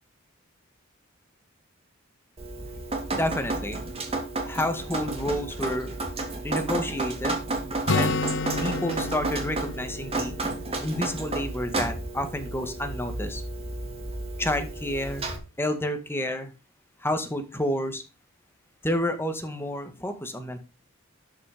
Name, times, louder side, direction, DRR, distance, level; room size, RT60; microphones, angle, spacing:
Drip, 2.4-15.4, right 2 dB, 30° right, 2.8 m, -32 dB
voice 1, 3.1-3.9 4.4-5.9 6.4-8.2 8.6-10.3 10.8-13.4 14.4-15.3 15.6-16.5 17.0-18.0 18.8-20.6, left 1 dB, 10° left, 8 dB, 1.9 m, -30 dB
Acoustic guitar, 7.9-11.6, left 3 dB, 60° left, 0.9 m, -31 dB
12.5 x 6.6 x 5.1 m, 0.30 s
head